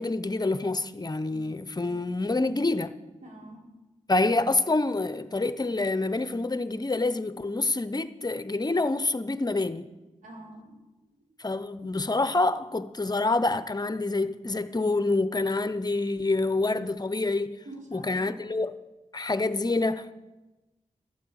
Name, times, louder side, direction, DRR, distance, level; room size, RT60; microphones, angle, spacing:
voice 1, 0.0-2.9 4.1-9.9 11.4-17.6 17.9-18.8 19.1-20.1, left 2 dB, 30° left, 0.7 m, -27 dB
voice 2, 3.2-3.7 10.2-10.8 17.6-18.5, right 1 dB, 65° right, 4.9 m, -46 dB
13.0 x 8.6 x 8.6 m
wide cardioid pair, 70°, 14 cm